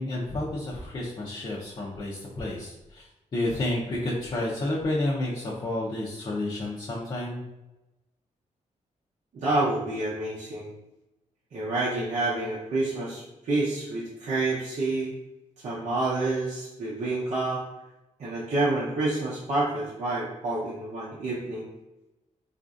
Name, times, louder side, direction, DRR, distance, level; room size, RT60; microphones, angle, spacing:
voice 1, 0.0-3.1 3.3-7.4, left 1 dB, 35° left, -7 dB, 0.6 m, -30 dB
voice 2, 9.3-10.7 11.5-15.1 15.6-17.6 18.2-21.7, right 2 dB, 70° right, -8 dB, 0.7 m, -28 dB
4.1 x 2.5 x 2.4 m, 0.98 s
wide cardioid pair, 125°, 13 cm